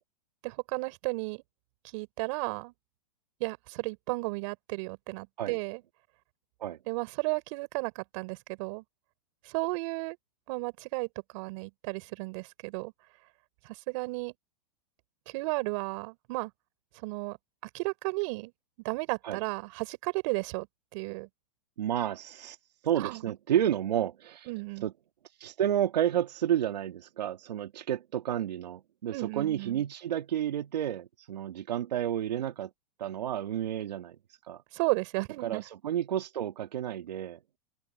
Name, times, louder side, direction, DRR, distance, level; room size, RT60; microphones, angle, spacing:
voice 1, 0.4-1.4 1.9-2.7 3.4-5.8 6.9-8.8 9.5-10.2 10.5-12.9 13.6-14.3 15.3-16.5 17.0-17.4 17.7-18.5 18.8-20.7 20.9-21.3 23.0-23.2 24.5-24.9 29.1-29.8 34.7-35.6, right 27 dB, 50° right, 5.4 m, -33 dB
voice 2, 21.8-22.6 22.8-24.5 24.8-24.9 25.4-32.7 33.0-34.2 34.4-34.6 35.4-37.4, right 10 dB, 80° right, 1.8 m, -31 dB
open air
hypercardioid pair, 125°, 21 cm